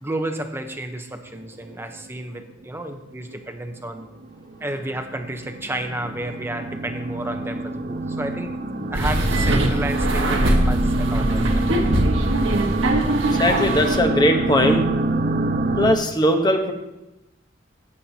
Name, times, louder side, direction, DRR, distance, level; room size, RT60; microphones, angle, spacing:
voice 1, 0.0-4.1 4.6-11.7, right 1 dB, 10° right, 6 dB, 0.8 m, -31 dB
sound 1, 1.3-2.4 2.7-2.8 3.3-3.4 3.8-16.0, right 2 dB, 50° right, 0.6 m, -26 dB
sound 2, 8.9-14.0, right 1 dB, 80° right, 1.4 m, -22 dB
voice 2, 13.3-14.9 15.8-16.7, left 1 dB, 20° left, 4 dB, 1.0 m, -19 dB
14.5 x 8.6 x 2.8 m, 0.94 s
head